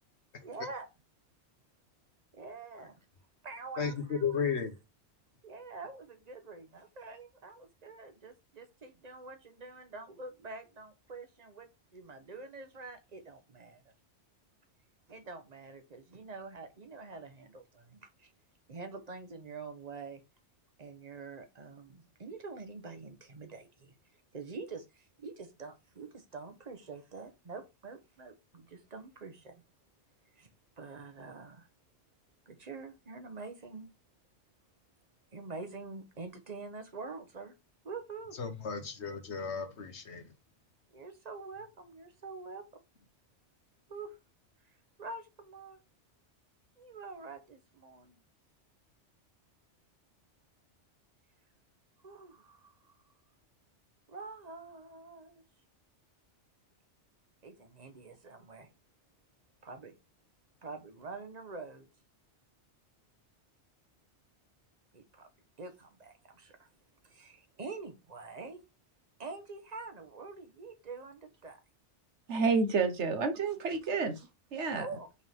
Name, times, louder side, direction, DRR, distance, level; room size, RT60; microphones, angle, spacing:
voice 1, 0.4-0.9 2.3-3.0 3.4-4.4 5.4-13.8 15.1-18.3 18.7-20.2 20.8-23.9 24.3-29.6 30.4-30.5 30.8-31.7 32.5-33.9 35.3-37.5 37.8-38.4 40.9-42.7 43.9-44.2 45.0-45.8 46.8-48.2 52.0-53.0 54.1-55.4 57.4-58.7 59.6-59.9 60.6-61.9 64.9-65.3 65.6-66.7 67.0-68.6 69.2-71.6 74.7-75.1, right 4 dB, 35° right, 1.2 m, -46 dB
voice 2, 3.8-4.7 38.4-40.2, left 6 dB, 70° left, 1.5 m, -34 dB
voice 3, 72.3-74.9, right 4 dB, 75° right, 1.4 m, -30 dB
5.7 x 3.8 x 4.5 m
omnidirectional pair, 1.2 m